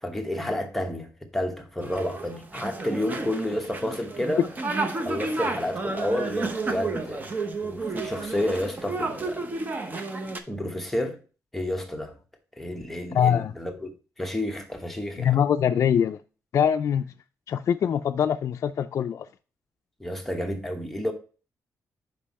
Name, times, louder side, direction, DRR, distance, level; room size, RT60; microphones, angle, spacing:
voice 1, 0.0-4.4 5.0-9.4 10.5-11.2 11.5-12.2 12.6-13.9 14.2-15.3 20.0-21.1, left 1 dB, 5° left, 1.0 m, -30 dB
sound 1, 1.8-10.4, right 3 dB, 30° right, 0.8 m, -31 dB
voice 2, 13.1-13.5 15.2-16.2 16.5-17.1 17.5-19.3, left 8 dB, 55° left, 0.3 m, -23 dB
5.5 x 5.2 x 4.1 m
cardioid pair, 130°, 6 cm